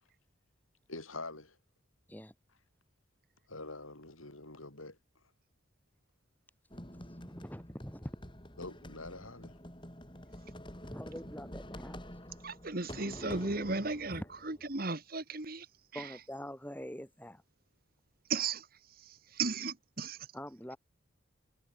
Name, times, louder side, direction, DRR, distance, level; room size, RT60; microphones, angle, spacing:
voice 1, 0.9-1.6 3.5-5.0 8.6-9.5, left 2 dB, 90° left, 7.9 m, -45 dB
sound 1, 6.7-14.8, equal, 25° left, 7.6 m, -48 dB
voice 2, 7.2-8.1 10.8-12.4 14.1-14.3 15.9-17.4 20.3-20.8, equal, 10° left, 5.4 m, -44 dB
voice 3, 12.4-14.2 14.5-15.7 16.0-16.1 18.3-18.7 19.0-20.2, right 4 dB, 45° right, 1.8 m, -35 dB
head